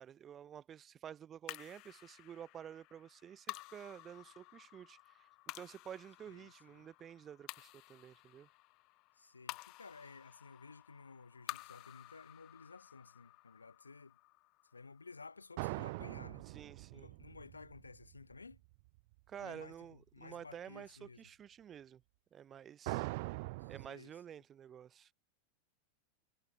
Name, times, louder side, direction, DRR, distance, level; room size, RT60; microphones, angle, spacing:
voice 1, 0.0-5.3 5.6-8.5 16.5-17.1 19.3-22.0 22.3-23.1 23.4-25.1, right 9 dB, 25° right, 1.1 m, -51 dB
sound 1, 1.5-16.0, left 23 dB, 40° left, 5.2 m, -52 dB
voice 2, 6.3-6.9 9.1-14.2 14.7-16.5 16.9-18.6 19.4-21.3 23.6-24.2, left 4 dB, 80° left, 3.9 m, -55 dB
sound 2, 15.6-18.6 22.9-23.9, right 25 dB, 50° right, 1.2 m, -42 dB
figure-of-eight pair, 90°, 0 cm